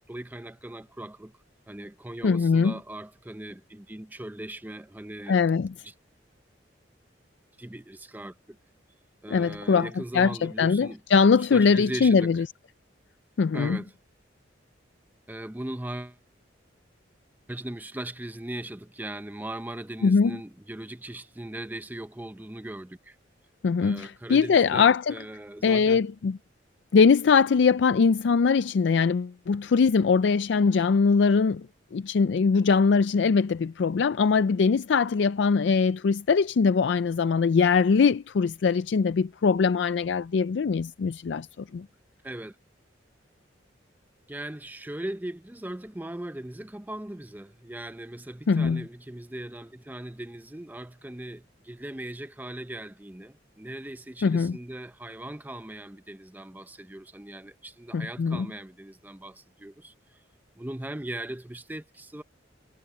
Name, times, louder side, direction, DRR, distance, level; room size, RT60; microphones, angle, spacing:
voice 1, 0.1-1.3 1.7-5.4 5.8-5.9 7.6-8.6 9.2-11.0 11.3-12.4 13.5-13.9 15.3-16.2 17.5-23.2 23.8-26.1 42.2-42.6 44.3-60.2 60.6-62.2, right 1 dB, 10° right, 0.6 m, -39 dB
voice 2, 2.2-2.7 5.3-5.7 9.3-9.9 10.1-12.4 13.4-13.8 20.0-20.4 23.6-25.1 25.6-26.4 26.9-31.7 31.9-41.5 41.7-41.9 48.5-48.8 54.2-54.6 57.9-58.5, left 5 dB, 65° left, 0.4 m, -22 dB
head